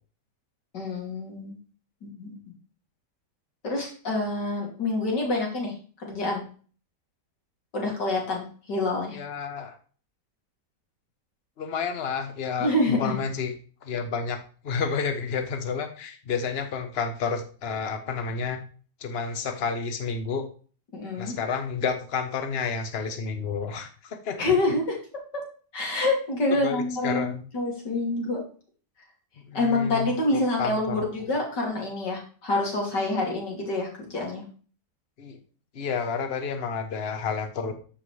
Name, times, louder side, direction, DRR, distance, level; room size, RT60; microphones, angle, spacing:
voice 1, 0.7-1.6 2.0-2.4 3.6-6.4 7.7-9.2 12.6-13.2 20.9-21.3 24.4-25.0 25.7-27.3 27.5-28.4 29.5-34.4, left 2 dB, 80° left, -1 dB, 3.4 m, -27 dB
voice 2, 9.1-9.8 11.6-13.5 13.8-14.4 14.6-18.6 19.0-20.4 21.2-24.4 26.6-27.4 29.5-31.0 35.2-35.4 35.7-37.7, left 5 dB, 40° left, 7 dB, 1.1 m, -30 dB
13.0 x 6.3 x 3.2 m, 0.41 s
omnidirectional pair, 1.8 m